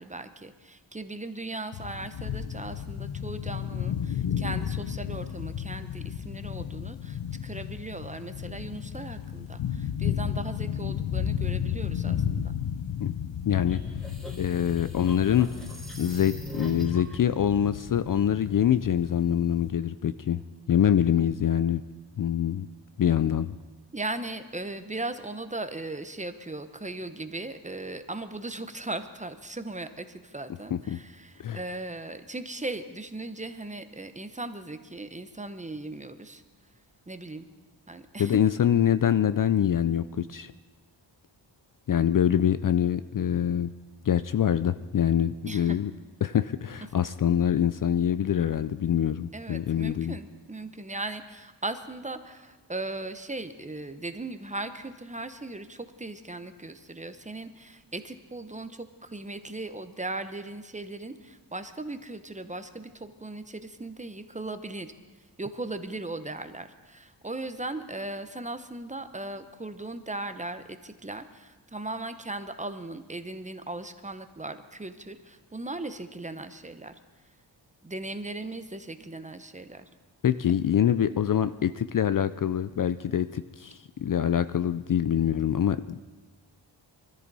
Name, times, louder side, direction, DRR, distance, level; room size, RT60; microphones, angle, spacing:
voice 1, 0.0-12.5 23.9-36.4 37.1-37.5 37.9-38.4 45.5-45.8 49.3-64.9 65.4-76.9 77.8-79.9, right 2 dB, 15° right, 9 dB, 0.8 m, -38 dB
sound 1, 1.7-19.7, left 9 dB, 80° left, 0.9 m, -33 dB
voice 2, 13.5-13.8 14.4-15.5 16.0-20.4 20.7-21.8 22.2-22.7 23.0-23.5 30.7-31.0 31.4-31.6 38.2-40.5 41.9-43.7 44.0-45.9 46.2-50.2 80.2-86.0, left 9 dB, 50° left, 13 dB, 0.4 m, -25 dB
sound 2, 13.7-17.2, right 1 dB, ahead, 2.5 m, -41 dB
24.0 x 13.5 x 4.1 m, 1.2 s
wide cardioid pair, 125°, 44 cm